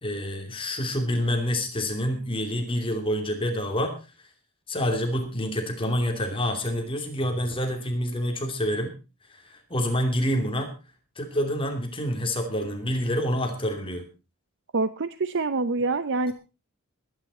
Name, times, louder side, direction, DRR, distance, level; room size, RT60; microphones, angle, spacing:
voice 1, 0.0-3.9 4.7-8.9 9.3-10.7 11.2-14.0, equal, 25° left, 4 dB, 2.7 m, -27 dB
voice 2, 14.7-16.3, right 3 dB, 55° right, 13 dB, 0.6 m, -26 dB
21.0 x 9.6 x 4.2 m, 0.31 s
head